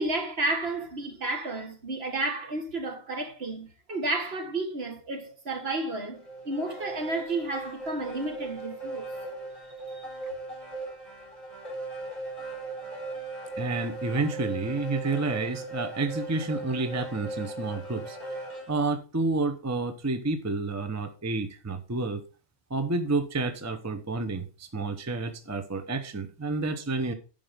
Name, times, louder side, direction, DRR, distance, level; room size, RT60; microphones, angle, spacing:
voice 1, 0.0-9.1 9.9-10.1, right 2 dB, 50° right, 1.8 m, -32 dB
sound 1, 6.1-18.7, right 2 dB, 25° left, 4.2 m, -38 dB
voice 2, 13.6-22.2 22.7-27.1, right 3 dB, 15° right, 0.8 m, -30 dB
11.5 x 5.2 x 5.1 m
omnidirectional pair, 1.3 m